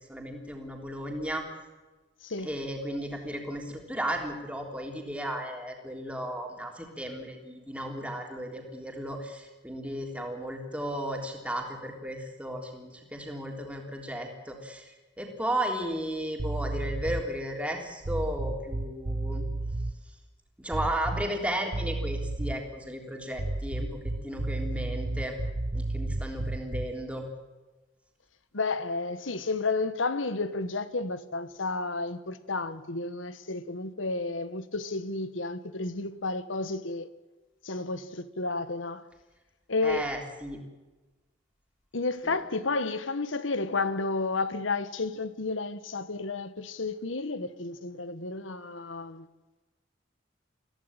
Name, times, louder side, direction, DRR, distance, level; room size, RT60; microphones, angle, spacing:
voice 1, 0.1-1.5 2.4-14.9 15.2-19.4 20.6-25.4 25.7-27.3 39.8-40.6 42.2-42.4, right 1 dB, 5° right, 3.5 m, -34 dB
sound 1, 16.4-17.4 18.0-19.9 20.7-21.4 21.7-22.7 23.3-27.0, right 2 dB, 55° right, 1.1 m, -32 dB
voice 2, 28.5-37.1 37.6-39.1 39.7-40.1 41.9-49.3, left 3 dB, 85° left, 1.3 m, -31 dB
22.0 x 16.0 x 8.9 m
head